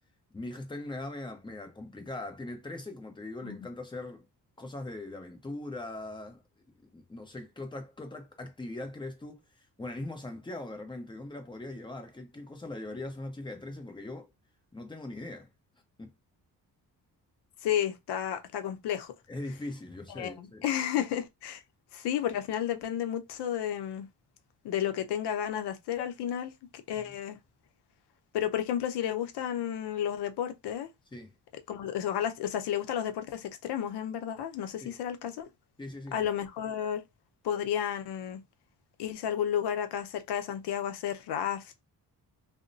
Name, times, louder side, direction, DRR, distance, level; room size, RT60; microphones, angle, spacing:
voice 1, 0.3-4.3 4.6-6.4 6.8-9.4 9.8-14.3 14.7-15.5 16.0-16.1 19.3-20.6 27.0-27.1 31.1-31.3 34.8-34.9 35.8-36.3, left 2 dB, 10° left, 0.7 m, -40 dB
voice 2, 17.6-19.1 20.1-21.6 21.9-24.1 24.6-27.4 28.3-30.9 31.7-35.5 36.1-37.0 37.4-38.4 39.0-41.8, left 10 dB, 90° left, 0.6 m, -32 dB
2.8 x 2.1 x 2.6 m
cardioid pair, 95°, 39 cm